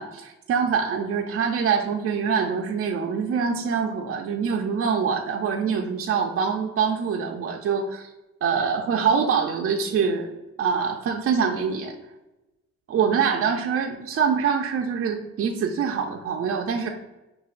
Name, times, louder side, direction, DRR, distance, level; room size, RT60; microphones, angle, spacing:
voice 1, 0.0-8.1 8.4-10.3 10.6-12.0 12.9-16.9, right 6 dB, 50° right, 2 dB, 0.4 m, -24 dB
5.7 x 2.3 x 2.4 m, 1.0 s
cardioid pair, 90°, 30 cm